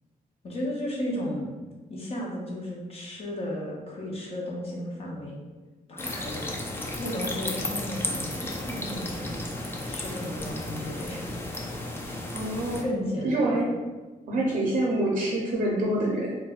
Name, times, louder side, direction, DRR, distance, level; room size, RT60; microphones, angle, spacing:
voice 1, 0.4-1.5 1.9-5.4 5.9-6.5 7.0-9.4 9.9-11.3 12.8-13.7, left 1 dB, 40° left, -3 dB, 0.7 m, -34 dB
sound 1, 6.0-12.8, left 1 dB, 15° left, 0.4 m, -34 dB
voice 2, 12.3-12.8 13.2-13.7 14.3-16.4, right 1 dB, 60° right, -3 dB, 0.6 m, -26 dB
4.5 x 2.2 x 2.4 m, 1.3 s
wide cardioid pair, 145°, 15 cm